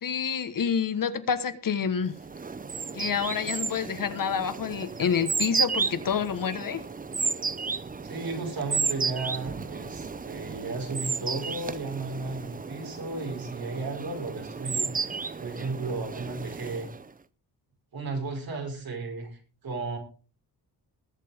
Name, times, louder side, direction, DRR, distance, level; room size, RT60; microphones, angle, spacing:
voice 1, 0.0-2.1 2.9-6.8, left 7 dB, 55° left, 11 dB, 1.4 m, -28 dB
sound 1, 2.1-17.1, right 5 dB, 20° right, 0.6 m, -33 dB
voice 2, 8.0-16.9 17.9-19.4 19.6-20.0, right 3 dB, 60° right, 2 dB, 5.1 m, -34 dB
21.0 x 7.7 x 3.5 m, 0.35 s
wide cardioid pair, 130°, 40 cm